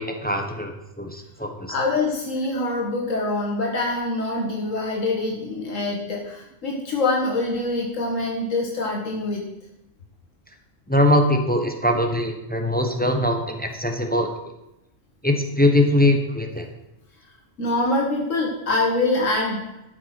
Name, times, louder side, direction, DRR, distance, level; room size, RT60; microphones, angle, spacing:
voice 1, 0.0-1.7 10.9-14.3 15.2-16.7, left 1 dB, 10° left, 4 dB, 1.1 m, -22 dB
voice 2, 1.7-9.4 17.6-19.6, left 2 dB, 85° left, -1 dB, 1.9 m, -24 dB
13.0 x 5.6 x 6.0 m, 0.91 s
omnidirectional pair, 1.3 m